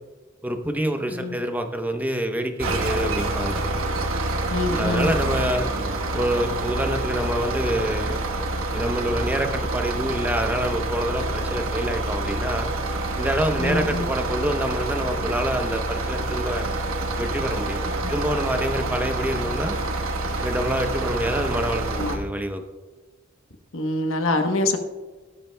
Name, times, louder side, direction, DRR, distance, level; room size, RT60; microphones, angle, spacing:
voice 1, 0.4-3.6 4.7-5.7 6.1-8.2 8.7-12.7 13.2-16.7 17.2-17.8 18.1-19.8 20.4-22.6, equal, 10° right, 5 dB, 0.8 m, -26 dB
sound 1, 2.6-22.2, right 2 dB, 80° right, 1.2 m, -27 dB
voice 2, 4.5-5.1 13.6-14.0 18.0-18.1 21.9-22.3 23.7-24.8, left 2 dB, 75° left, 5 dB, 1.1 m, -25 dB
18.0 x 12.0 x 2.2 m, 1.3 s
head